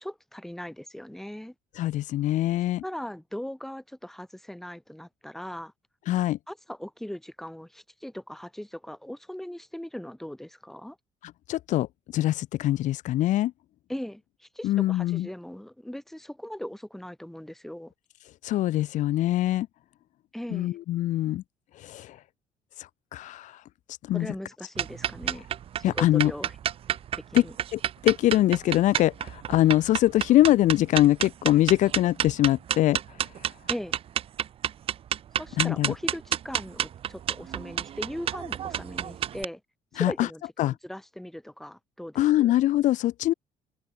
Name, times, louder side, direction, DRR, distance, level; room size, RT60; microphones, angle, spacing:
voice 1, 0.0-1.5 2.8-5.7 6.5-11.0 13.9-17.9 20.3-20.8 24.1-25.5 25.8-26.5 27.3-27.5 33.7-34.0 35.4-39.6 39.9-42.5, left 1 dB, ahead, 6.7 m, -39 dB
voice 2, 1.7-2.8 6.1-6.4 11.2-11.9 12.1-13.5 14.6-15.3 18.4-19.7 20.5-21.4 21.7-22.2 22.8-23.6 24.0-24.3 25.8-26.3 27.3-27.4 27.7-33.2 35.6-35.9 40.0-40.3 40.6-40.7 42.1-43.3, left 14 dB, 70° left, 1.5 m, -23 dB
sound 1, 24.7-39.4, right 10 dB, 45° right, 1.3 m, -30 dB
open air
cardioid pair, 165°, 13 cm